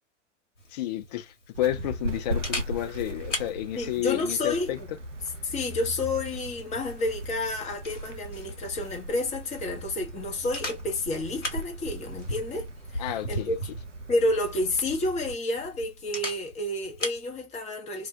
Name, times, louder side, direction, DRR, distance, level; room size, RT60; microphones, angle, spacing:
Camera, 0.6-17.3, left 1 dB, 80° left, 1.0 m, -40 dB
voice 1, 0.7-4.8 13.0-13.6, left 13 dB, 35° left, 0.4 m, -31 dB
sound 1, 1.5-15.3, right 1 dB, 90° right, 0.5 m, -39 dB
voice 2, 3.8-4.9 5.4-13.6 14.1-18.1, left 2 dB, 20° left, 0.8 m, -30 dB
2.1 x 2.1 x 2.6 m
figure-of-eight pair, 90°, 36 cm